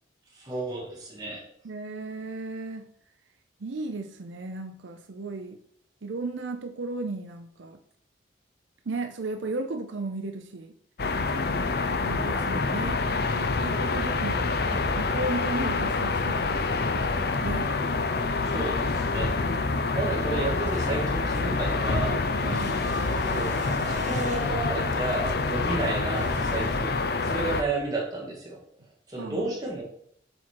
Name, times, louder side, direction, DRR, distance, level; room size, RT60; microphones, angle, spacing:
voice 1, 0.3-1.5 13.9-14.6 18.4-19.4 19.9-22.2 23.3-23.5 23.8-27.0 27.2-28.6 29.1-29.8, right 2 dB, 20° right, -3 dB, 2.2 m, -32 dB
voice 2, 1.6-2.9 3.6-5.6 6.0-7.8 8.9-10.7 12.0-18.1 22.4-22.9 29.2-29.5, right 3 dB, 75° right, 6 dB, 0.6 m, -35 dB
sound 1, 11.0-27.6, left 3 dB, 55° left, 0.6 m, -27 dB
sound 2, 20.0-28.1, right 2 dB, 40° right, 0.8 m, -43 dB
7.8 x 4.4 x 4.7 m, 0.69 s
head